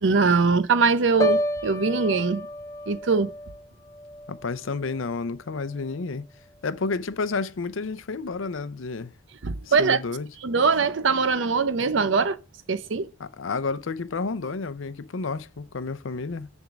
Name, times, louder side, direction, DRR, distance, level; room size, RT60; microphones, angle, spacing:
voice 1, 0.0-2.5 2.9-3.3 9.4-10.0 10.4-12.4 12.7-13.1, right 4 dB, 65° right, 0.6 m, -22 dB
Piano, 1.2-5.2 5.5-5.9, equal, 15° left, 0.7 m, -31 dB
voice 2, 4.3-6.2 6.6-9.1 9.7-10.3 13.2-16.5, left 4 dB, 75° left, 0.6 m, -30 dB
10.5 x 3.5 x 6.1 m
head